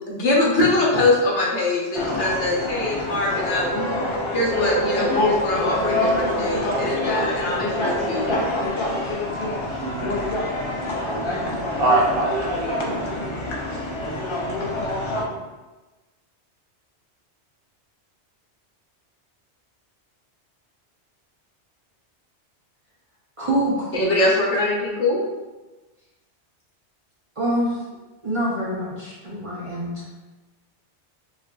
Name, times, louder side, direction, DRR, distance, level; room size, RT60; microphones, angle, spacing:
voice 1, 0.0-3.7 4.3-8.4 23.9-25.2, left 2 dB, 85° left, -4 dB, 1.1 m, -23 dB
sound 1, 1.9-15.2, left 2 dB, 55° left, 0.3 m, -26 dB
sound 2, 3.4-9.1, right 2 dB, ahead, 0.6 m, -30 dB
voice 2, 9.8-10.1 10.9-11.3 11.8-13.9 15.2-15.4, right 2 dB, 60° right, -3 dB, 0.8 m, -25 dB
voice 3, 23.4-23.9 27.4-27.8 28.2-30.1, right 1 dB, 40° right, -7 dB, 0.5 m, -25 dB
4.1 x 2.4 x 2.2 m, 1.2 s
omnidirectional pair, 1.2 m